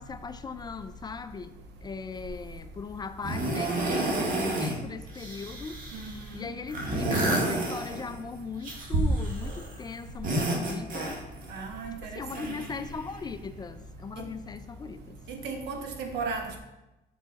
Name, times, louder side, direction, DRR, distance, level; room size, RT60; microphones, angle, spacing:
voice 1, 0.0-1.6 1.8-11.2 12.0-15.2, left 5 dB, 25° left, 11 dB, 0.3 m, -39 dB
sound 1, 2.2-2.6 3.2-4.8 5.1-6.2 6.7-8.2 8.6-9.7 10.1-11.5 12.3-13.3 14.2-14.3, right 1 dB, 55° right, 1.5 m, -30 dB
voice 2, 11.5-12.5 14.2-14.3 15.3-16.6, right 4 dB, 80° right, 4 dB, 1.0 m, -36 dB
5.7 x 4.7 x 4.1 m, 0.98 s
cardioid pair, 110°, 17 cm